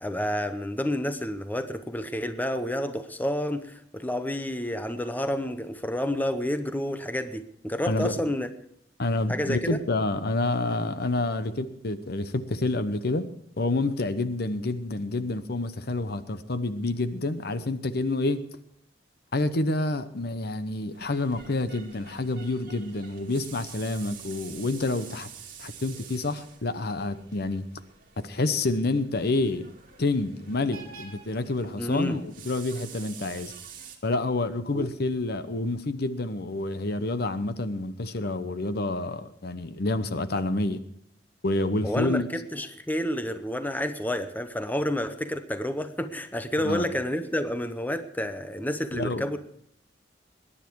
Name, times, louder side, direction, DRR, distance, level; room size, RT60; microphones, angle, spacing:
voice 1, 0.0-8.5 9.3-9.8 31.8-32.2 34.7-34.9 41.8-49.4, left 1 dB, 10° left, 9 dB, 0.7 m, -29 dB
voice 2, 9.0-13.3 13.6-18.4 19.3-25.3 25.6-27.6 28.2-29.7 30.0-33.5 34.0-40.8 41.4-42.2 46.6-46.9 48.9-49.3, left 2 dB, 60° left, 12 dB, 0.9 m, -28 dB
sound 1, 20.9-34.0, right 7 dB, 50° right, 2.4 m, -47 dB
21.5 x 10.0 x 4.6 m, 0.70 s
head